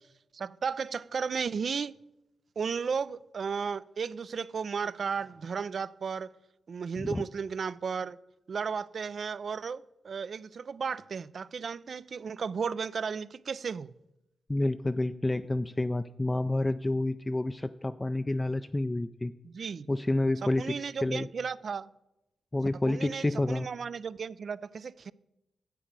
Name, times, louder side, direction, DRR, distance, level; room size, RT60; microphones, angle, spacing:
voice 1, 0.3-1.9 2.6-6.4 6.7-8.2 8.5-13.9 19.4-19.9 20.4-21.9 22.9-25.1, right 6 dB, 60° right, 0.3 m, -34 dB
voice 2, 14.5-19.3 19.9-21.3 22.5-23.7, left 2 dB, 20° left, 0.3 m, -29 dB
10.5 x 7.9 x 4.6 m
supercardioid pair, 45°, 0 cm